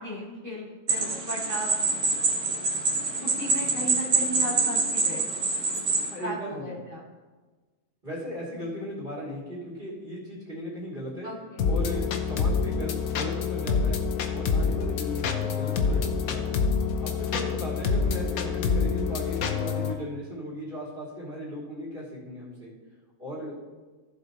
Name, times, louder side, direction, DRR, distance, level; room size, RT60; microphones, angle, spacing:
voice 1, 0.0-1.7 3.2-5.5 6.2-7.0 11.2-11.7, equal, 10° left, -7 dB, 2.1 m, -36 dB
sound 1, 0.9-6.1, right 3 dB, 90° right, 2.2 m, -26 dB
voice 2, 6.1-6.8 8.0-11.3 11.6-14.0 14.3-16.6 17.0-22.7 23.2-23.6, equal, 30° right, -6 dB, 3.0 m, -37 dB
sound 2, 11.6-19.9, left 5 dB, 70° left, 1.3 m, -27 dB
15.0 x 7.3 x 3.0 m, 1.3 s
omnidirectional pair, 1.6 m